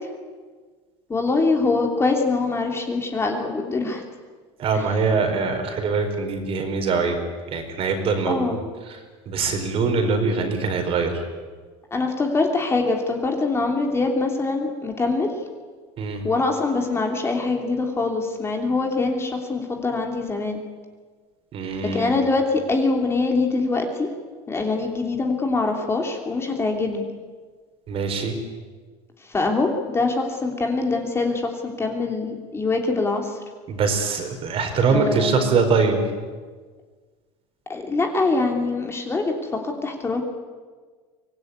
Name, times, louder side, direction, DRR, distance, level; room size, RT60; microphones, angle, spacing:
voice 1, 1.1-4.0 4.7-4.8 8.3-8.6 11.9-15.3 16.2-20.6 21.9-24.1 24.5-27.1 29.2-33.4 34.7-35.6 37.7-40.2, left 3 dB, 15° left, 2 dB, 3.0 m, -24 dB
voice 2, 4.6-7.2 7.5-8.4 9.3-11.2 16.0-16.2 21.5-22.1 27.9-28.3 33.7-36.0, right 4 dB, 40° right, 5 dB, 4.6 m, -23 dB
24.0 x 19.0 x 9.6 m, 1.5 s
supercardioid pair, 135°, 15 cm